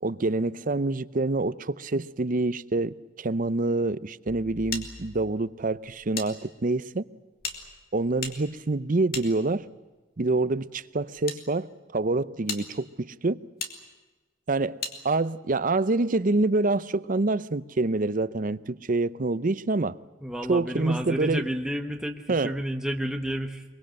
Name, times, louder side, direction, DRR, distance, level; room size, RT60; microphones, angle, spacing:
voice 1, 0.0-7.0 7.9-9.7 10.2-13.4 14.5-14.8 15.0-20.0 20.5-21.4 22.3-22.5, right 2 dB, 45° right, 0.7 m, -26 dB
sound 1, 4.7-6.3 6.6-6.7 7.4-9.9 10.7-11.4 12.0-12.1 12.5-12.6 13.6-13.7 14.8-15.0, left 5 dB, 50° left, 2.9 m, -37 dB
voice 2, 20.2-23.6, equal, 5° right, 1.2 m, -31 dB
23.0 x 23.0 x 7.7 m
head